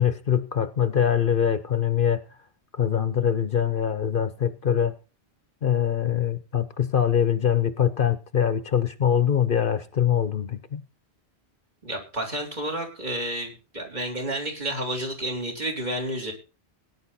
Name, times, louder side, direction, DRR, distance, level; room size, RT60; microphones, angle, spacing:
voice 1, 0.0-2.2 2.8-5.0 5.6-10.8, left 9 dB, 55° left, 0.9 m, -23 dB
voice 2, 11.8-16.3, right 1 dB, 40° right, 4.0 m, -30 dB
17.5 x 9.7 x 4.2 m
omnidirectional pair, 1.1 m